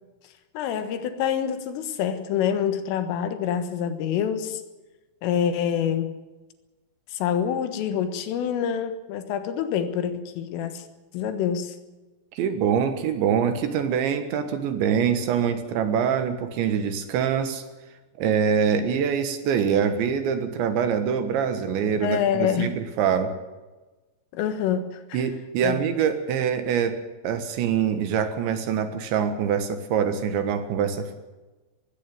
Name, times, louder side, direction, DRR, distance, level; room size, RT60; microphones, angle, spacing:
voice 1, 0.6-4.6 5.2-6.1 7.1-10.8 11.1-11.8 22.0-22.7 24.3-25.3 25.6-25.8, left 8 dB, 75° left, 10 dB, 4.0 m, -26 dB
voice 2, 12.4-17.6 18.2-23.3 25.1-27.0 27.2-31.2, right 7 dB, 70° right, 9 dB, 3.5 m, -24 dB
20.0 x 16.0 x 9.1 m, 1.2 s
omnidirectional pair, 5.9 m